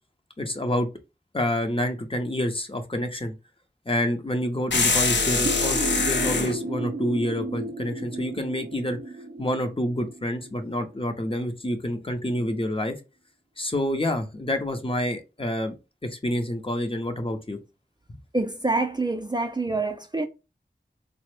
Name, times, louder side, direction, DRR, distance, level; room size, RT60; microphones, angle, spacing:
voice 1, 0.4-0.9 1.3-3.3 3.9-9.0 9.4-13.0 13.6-15.8 16.1-17.6, left 1 dB, 30° left, 0.6 m, -28 dB
sound 1, 4.7-6.6, left 4 dB, 85° left, 0.5 m, -23 dB
sound 2, 5.5-11.0, right 2 dB, 75° right, 0.6 m, -33 dB
voice 2, 18.3-20.3, right 2 dB, 25° right, 0.4 m, -26 dB
3.4 x 2.0 x 3.1 m
wide cardioid pair, 45°, 18 cm